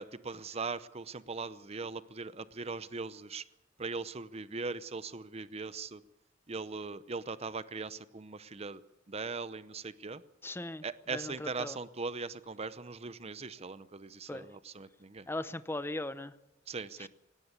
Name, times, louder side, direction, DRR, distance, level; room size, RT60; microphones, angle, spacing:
voice 1, 0.0-3.4 3.8-6.0 6.5-8.8 9.1-10.2 10.8-15.3 16.7-17.1, right 4 dB, 35° right, 15 dB, 0.7 m, -40 dB
voice 2, 10.4-10.8 11.1-11.7 14.3-14.4 15.3-16.3, left 2 dB, 10° left, 13 dB, 0.7 m, -38 dB
18.5 x 17.0 x 8.3 m, 0.92 s
head